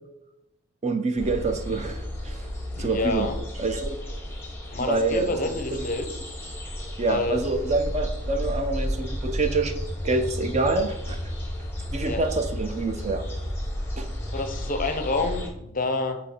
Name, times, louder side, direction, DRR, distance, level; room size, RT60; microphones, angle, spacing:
voice 1, 0.8-2.5 2.8-3.3 3.6-4.0 4.8-5.4 5.7-5.8 7.0-9.7 10.0-11.2 11.9-13.2 14.0-14.1, right 3 dB, 30° right, 7 dB, 0.5 m, -26 dB
sound 1, 1.2-15.5, equal, 10° left, 0.9 m, -33 dB
voice 2, 2.7-3.3 4.7-6.1 7.1-7.4 12.0-12.2 14.3-16.2, left 3 dB, 40° left, 6 dB, 0.6 m, -28 dB
8.2 x 2.8 x 4.3 m, 0.89 s
head